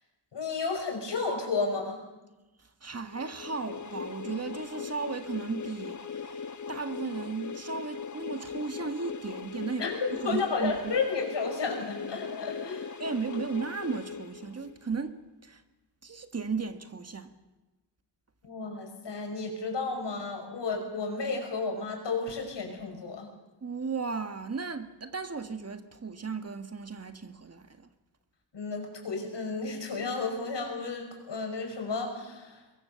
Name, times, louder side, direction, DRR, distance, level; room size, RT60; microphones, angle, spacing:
voice 1, 0.3-2.0 9.8-12.9 18.4-23.3 28.5-32.6, left 4 dB, 90° left, 6.1 m, -32 dB
voice 2, 2.8-11.0 13.0-15.2 15.4-15.6 16.0-17.3 23.6-27.9, right 4 dB, 35° right, 1.6 m, -35 dB
sound 1, 3.1-14.9, left 6 dB, 45° left, 1.1 m, -40 dB
23.5 x 22.5 x 7.0 m
wide cardioid pair, 145°, 41 cm